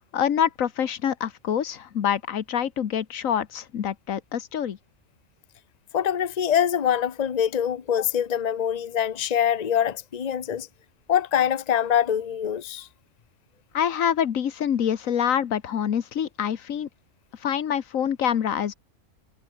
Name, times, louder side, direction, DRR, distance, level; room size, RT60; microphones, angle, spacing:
voice 1, 0.1-4.8 13.7-16.9 17.4-18.7, left 9 dB, 85° left, 1.5 m, -26 dB
voice 2, 5.9-10.7 11.1-12.9, left 9 dB, 35° left, 0.9 m, -24 dB
omnidirectional pair, 1.4 m